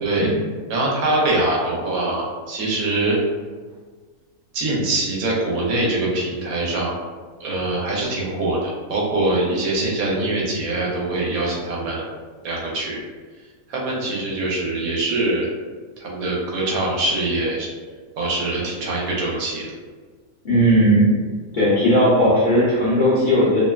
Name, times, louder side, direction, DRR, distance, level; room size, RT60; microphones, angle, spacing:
voice 1, 0.0-0.3 0.7-3.2 4.5-7.0 7.4-12.0 12.4-13.0 13.7-15.5 16.0-17.7 18.2-19.7, right 2 dB, 80° right, -4 dB, 1.1 m, -23 dB
voice 2, 20.4-21.1 21.5-23.6, equal, 50° left, -10 dB, 0.6 m, -16 dB
2.7 x 2.1 x 2.2 m, 1.5 s
omnidirectional pair, 1.5 m